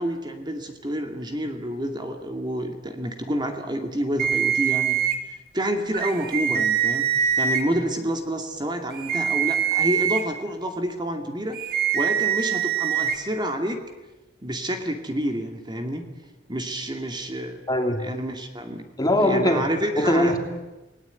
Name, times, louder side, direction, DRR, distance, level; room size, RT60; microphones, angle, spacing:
voice 1, 0.0-5.0 5.3-7.1 7.4-13.9 14.4-16.1 16.5-17.6 18.0-18.8 19.2-20.4, right 1 dB, 25° right, 5 dB, 2.4 m, -29 dB
sound 1, 4.2-5.2 5.9-7.6 8.9-10.2 11.5-13.2, right 8 dB, 55° right, 3.2 m, -23 dB
voice 2, 17.7-18.1 19.0-19.7 20.0-20.4, left 1 dB, 20° left, 4 dB, 3.1 m, -21 dB
29.5 x 19.0 x 9.3 m, 1.1 s
head